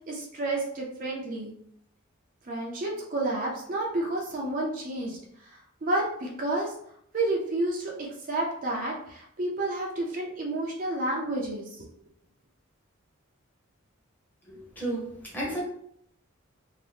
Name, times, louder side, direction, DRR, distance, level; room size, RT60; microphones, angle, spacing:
voice 1, 0.1-1.5 2.5-5.2 5.8-6.7 7.1-11.6, right 2 dB, 40° right, -2 dB, 0.5 m, -30 dB
voice 2, 14.5-15.6, right 1 dB, 10° left, -5 dB, 0.8 m, -33 dB
2.6 x 2.1 x 3.3 m, 0.70 s
head